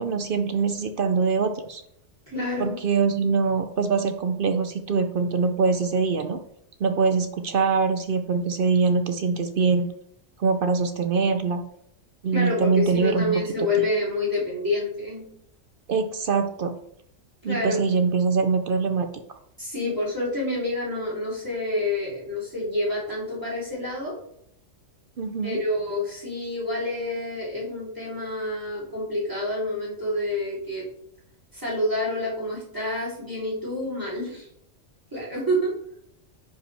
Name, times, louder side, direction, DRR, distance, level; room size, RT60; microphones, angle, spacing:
voice 1, 0.0-1.8 2.6-6.4 6.8-9.9 10.4-11.6 12.2-13.4 15.9-16.8 17.4-19.1 25.2-25.6, right 5 dB, 55° right, 8 dB, 0.6 m, -23 dB
voice 2, 2.3-2.8 12.3-15.2 17.4-17.8 19.6-24.1 25.4-30.9 31.5-34.5 35.1-35.7, left 1 dB, 15° right, -6 dB, 2.9 m, -28 dB
10.0 x 5.0 x 3.3 m, 0.72 s
omnidirectional pair, 1.3 m